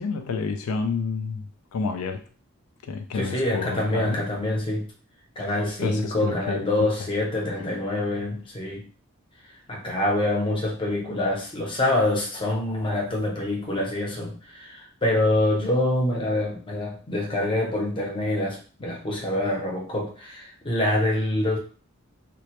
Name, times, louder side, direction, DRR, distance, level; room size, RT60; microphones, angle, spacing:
voice 1, 0.0-2.2 2.8-4.2 5.4-6.9 7.6-7.8, left 5 dB, 90° left, 6 dB, 0.3 m, -30 dB
voice 2, 3.1-4.9 5.4-8.9 9.7-21.6, left 1 dB, 25° left, -1 dB, 0.6 m, -26 dB
2.1 x 2.0 x 2.8 m, 0.39 s
head